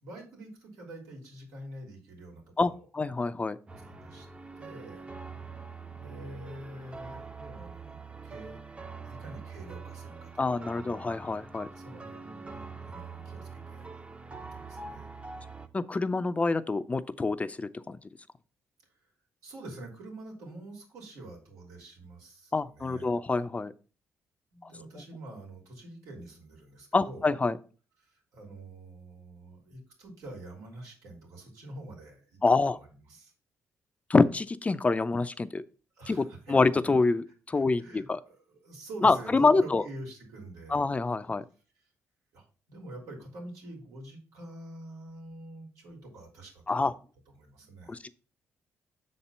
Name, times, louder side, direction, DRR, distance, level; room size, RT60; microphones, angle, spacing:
voice 1, 0.0-2.9 3.7-4.3 4.5-5.1 5.9-8.6 9.0-10.7 11.7-14.1 14.3-15.1 18.8-19.1 19.4-23.1 24.5-27.3 28.0-32.4 32.7-33.3 35.9-36.6 37.5-40.8 42.3-46.9 47.3-48.0, right 1 dB, 90° right, 0 dB, 3.0 m, -46 dB
voice 2, 2.6-3.6 10.4-11.7 15.7-18.0 22.5-23.7 24.6-24.7 26.9-27.6 32.4-32.8 34.1-35.6 36.1-38.2 39.0-39.8 40.7-41.4 46.7-46.9 47.9-48.1, left 3 dB, 25° left, 14 dB, 0.5 m, -26 dB
sound 1, 3.7-15.7, right 4 dB, 25° right, 0.7 m, -44 dB
6.6 x 4.4 x 5.4 m, 0.37 s
cardioid pair, 80°, 5 cm